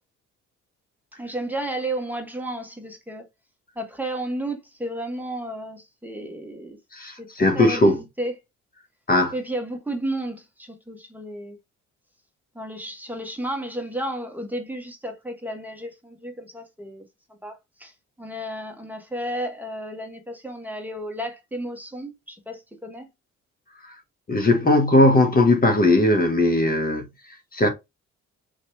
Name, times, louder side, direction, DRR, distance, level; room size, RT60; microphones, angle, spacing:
voice 1, 1.2-3.2 3.7-6.8 7.2-7.3 7.5-8.3 9.3-11.6 12.5-17.0 17.4-17.9 18.2-23.1, right 1 dB, 5° right, 1.1 m, -32 dB
voice 2, 6.9-8.0 9.1-9.3 24.3-27.1 27.5-27.7, left 2 dB, 30° left, 1.0 m, -18 dB
4.3 x 3.0 x 3.1 m
cardioid pair, 90°, 30 cm